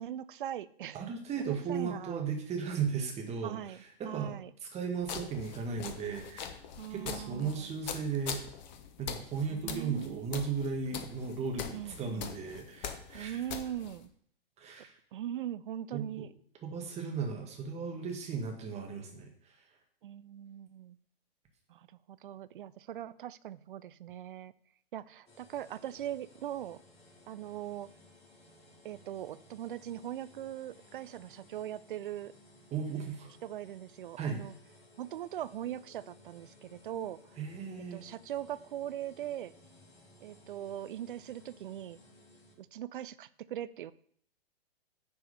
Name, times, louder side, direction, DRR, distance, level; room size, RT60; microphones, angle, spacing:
voice 1, 0.0-1.1 1.4-2.2 3.4-4.5 6.8-7.7 9.5-10.7 11.7-12.3 13.1-14.1 15.1-16.3 20.0-21.0 21.7-24.5 24.9-26.8 27.3-27.9 28.8-32.3 33.4-34.5 35.0-37.4 37.9-39.5 40.2-42.0 42.6-43.9, right 11 dB, 55° right, 17 dB, 0.5 m, -41 dB
voice 2, 0.9-3.6 4.0-4.4 4.7-6.5 6.9-8.4 9.0-13.3 14.6-14.9 15.9-16.2 16.6-19.3 32.7-33.3 34.2-34.4 37.4-38.0, right 5 dB, 20° right, 2 dB, 1.8 m, -36 dB
sound 1, 5.0-14.1, left 8 dB, 45° left, 1.2 m, -43 dB
sound 2, 25.3-42.5, left 1 dB, 25° left, 4.1 m, -59 dB
9.3 x 4.7 x 5.3 m, 0.64 s
figure-of-eight pair, 115°, 31 cm